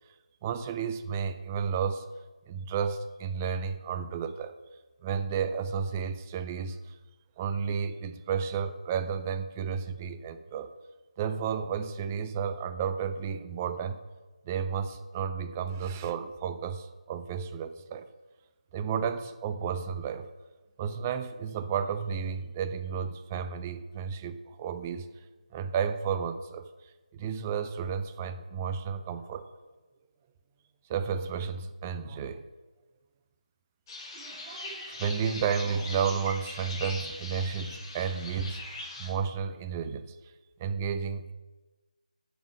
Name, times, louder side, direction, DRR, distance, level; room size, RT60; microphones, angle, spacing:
voice 1, 0.4-2.1 2.5-4.5 5.0-7.0 7.4-10.7 11.2-14.0 14.5-18.1 18.7-20.3 20.8-25.1 25.5-26.7 27.1-29.5 30.9-32.4 34.1-40.1 40.6-41.3, right 7 dB, 15° right, 10 dB, 0.3 m, -32 dB
sound 1, 33.9-39.1, left 2 dB, 30° left, 2.0 m, -41 dB
8.1 x 7.1 x 6.4 m, 1.2 s
figure-of-eight pair, 160°, 4 cm